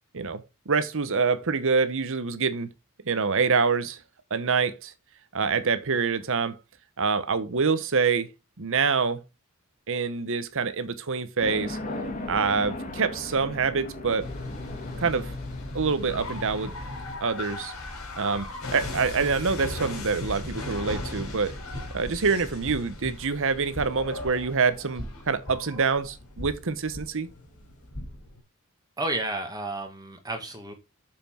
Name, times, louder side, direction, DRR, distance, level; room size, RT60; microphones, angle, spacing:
voice 1, 0.1-2.7 3.0-4.0 4.3-4.9 5.3-6.6 7.0-8.3 8.6-9.2 9.9-11.8 12.3-14.3 15.0-15.3 15.7-16.7 17.2-17.7 18.2-21.5 21.9-27.3, right 5 dB, 65° right, 1.0 m, -26 dB
sound 1, 11.4-26.5, left 1 dB, 35° left, 1.8 m, -41 dB
sound 2, 14.2-28.4, left 2 dB, 70° left, 3.6 m, -37 dB
voice 2, 29.0-30.7, right 2 dB, 15° right, 1.5 m, -31 dB
6.9 x 5.6 x 4.3 m
head